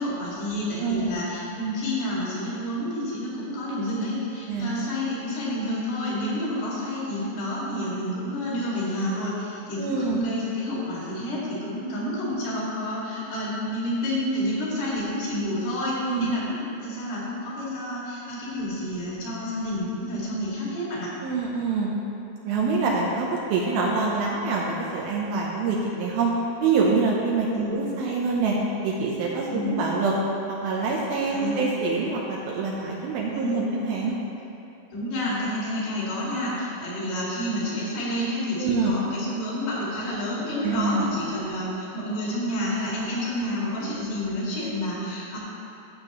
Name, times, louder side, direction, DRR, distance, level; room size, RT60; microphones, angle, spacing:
voice 1, 0.0-21.1 27.5-27.8 29.5-29.8 31.3-31.6 33.3-33.7 34.9-45.4, left 1 dB, 70° left, -7 dB, 4.3 m, -29 dB
voice 2, 0.8-1.1 4.5-4.7 9.8-10.2 16.1-16.3 21.2-21.9 22.4-26.3 26.6-28.6 28.8-30.1 30.6-34.2 38.6-38.9 40.6-41.1, right 4 dB, 75° right, -3 dB, 2.4 m, -25 dB
15.0 x 7.4 x 3.1 m, 2.8 s
omnidirectional pair, 4.9 m